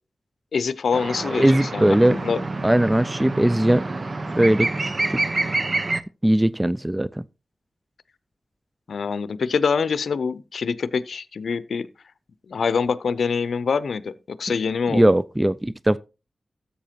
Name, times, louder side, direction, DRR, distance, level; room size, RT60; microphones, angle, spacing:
voice 1, 0.5-2.4 8.9-11.9 12.5-15.0, left 5 dB, 80° left, 0.6 m, -25 dB
sound 1, 0.9-6.0, right 2 dB, 50° right, 0.9 m, -27 dB
voice 2, 1.3-2.2 2.6-3.8 4.3-4.7 5.1-5.2 6.2-7.2 14.9-16.0, right 1 dB, 15° right, 0.4 m, -19 dB
13.5 x 8.1 x 2.9 m
cardioid pair, 40°, 0 cm